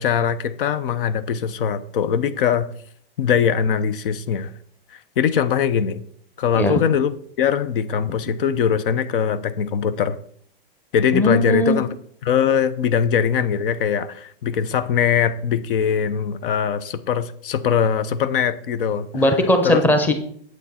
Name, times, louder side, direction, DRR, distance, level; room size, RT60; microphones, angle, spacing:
voice 1, 0.0-2.7 3.2-4.5 4.9-6.0 6.4-10.2 10.9-11.9 12.2-19.1 19.6-19.8, left 7 dB, 65° left, 13 dB, 0.7 m, -21 dB
voice 2, 11.1-11.8 19.1-20.1, left 1 dB, 5° left, 6 dB, 0.9 m, -18 dB
8.3 x 8.0 x 4.2 m, 0.63 s
supercardioid pair, 155°, 29 cm